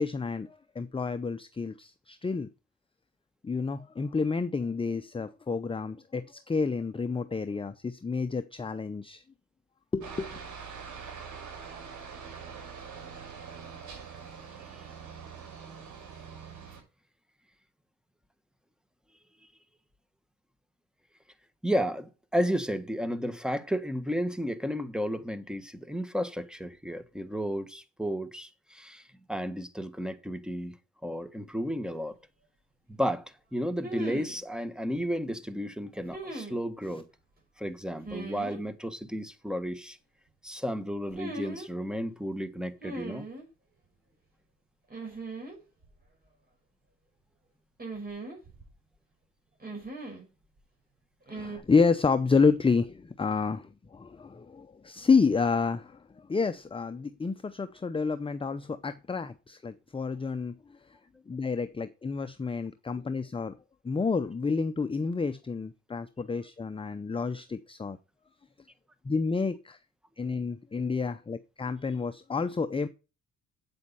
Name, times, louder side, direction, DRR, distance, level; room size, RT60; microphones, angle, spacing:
voice 1, 0.0-2.5 3.4-9.2 9.9-10.4 51.3-60.5 61.3-63.6 63.8-68.0 69.0-69.8 70.2-72.9, left 4 dB, 20° left, 0.7 m, -29 dB
Aircraft, 10.0-16.8, right 6 dB, 80° right, 6.8 m, -44 dB
voice 2, 21.6-30.7 31.0-32.1 32.9-37.1 37.6-40.0 40.4-43.3, equal, 5° right, 1.5 m, -33 dB
sound 1, 31.9-32.0 33.8-34.4 36.1-36.6 38.0-38.6 41.1-41.7 42.8-43.5 44.9-45.6 45.8-45.9 47.8-48.7 49.6-50.2 51.3-51.6, right 2 dB, 30° right, 5.8 m, -39 dB
8.6 x 7.8 x 5.5 m
cardioid pair, 90°, 30 cm